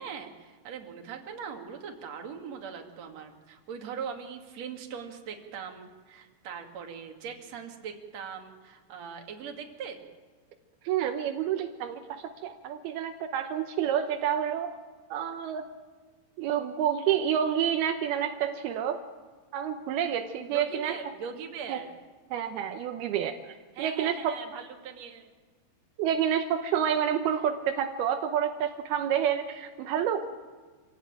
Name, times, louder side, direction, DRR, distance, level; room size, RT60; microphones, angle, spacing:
voice 1, 0.0-10.0 20.5-22.0 23.7-25.3, right 6 dB, 45° right, 3 dB, 3.1 m, -40 dB
voice 2, 10.8-14.8 15.1-15.7 16.4-19.0 19.5-20.9 21.7-21.8 22.3-24.3 26.0-30.3, right 9 dB, 80° right, 6 dB, 2.8 m, -29 dB
26.0 x 16.5 x 9.0 m, 1.4 s
omnidirectional pair, 4.5 m